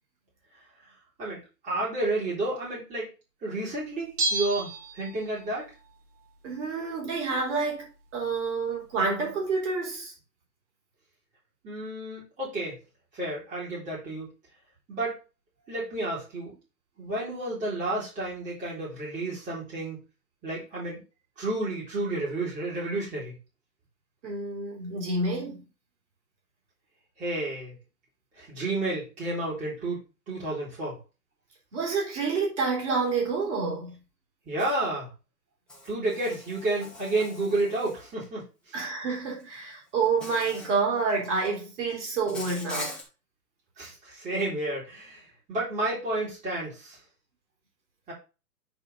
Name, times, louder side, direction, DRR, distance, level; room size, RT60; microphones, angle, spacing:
voice 1, 1.2-3.1 3.4-5.7 11.6-12.8 13.1-14.3 14.9-15.2 15.7-16.5 17.0-20.0 20.4-21.0 21.4-23.4 27.2-27.7 28.4-31.0 34.5-35.1 35.8-38.5 43.8-47.0 48.1-48.2, right 2 dB, 15° right, 3.7 m, -31 dB
Bell, 4.2-5.6 5.9-6.0, right 2 dB, 60° right, 1.6 m, -31 dB
voice 2, 6.4-10.1 24.2-25.6 31.7-34.0 38.7-43.0, right 4 dB, 45° right, 3.6 m, -28 dB
Insect, 34.6-34.8 35.7-38.2 39.4-39.5 40.2-40.8 41.1-41.6 42.3-43.0, left 2 dB, ahead, 0.7 m, -42 dB
8.9 x 4.0 x 4.1 m
hypercardioid pair, 150°, 50 cm